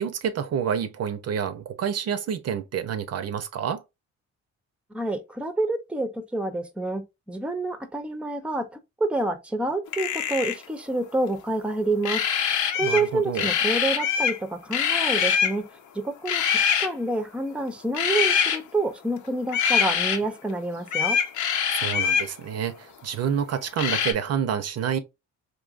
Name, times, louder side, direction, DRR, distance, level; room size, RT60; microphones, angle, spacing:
voice 1, 0.0-3.8 12.8-13.5 21.7-25.0, right 8 dB, 55° right, 0.5 m, -28 dB
voice 2, 4.9-15.6 15.9-21.2, right 2 dB, 5° right, 0.5 m, -28 dB
sound 1, 9.9-10.6 12.0-13.1 13.3-14.4 14.7-15.6 16.2-16.9 17.9-18.6 19.5-20.2 20.9-22.3 23.8-24.1, left 7 dB, 80° left, 0.8 m, -24 dB
3.8 x 2.6 x 2.4 m
cardioid pair, 90°, 30 cm